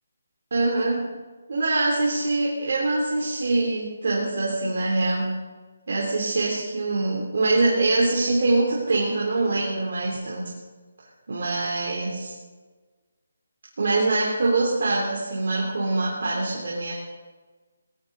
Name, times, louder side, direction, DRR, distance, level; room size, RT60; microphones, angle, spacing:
voice 1, 0.5-1.0 1.5-5.4 5.9-10.5 11.3-12.3 13.8-16.9, right 2 dB, 60° right, -4 dB, 3.4 m, -24 dB
18.5 x 15.0 x 4.0 m, 1.4 s
hypercardioid pair, 175°, 0 cm